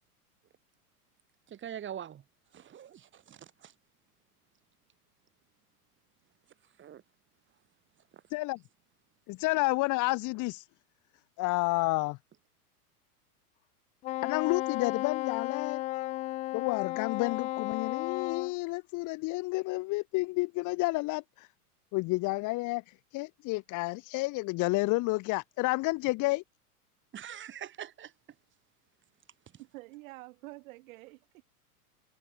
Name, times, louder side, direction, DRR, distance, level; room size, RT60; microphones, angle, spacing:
voice 1, 1.5-2.2 2.5-3.7 6.8-7.0 27.1-28.1, right 10 dB, 25° right, 3.9 m, -43 dB
voice 2, 8.3-8.6 9.3-10.6 11.4-12.2 14.2-15.8 16.5-21.2 21.9-22.8 23.1-26.4, left 23 dB, 40° left, 2.1 m, -30 dB
Wind instrument woodwind instrument, 14.0-18.5, left 18 dB, 15° left, 0.3 m, -34 dB
voice 3, 29.6-31.4, right 21 dB, 60° right, 7.4 m, -48 dB
hypercardioid pair, 120°, 46 cm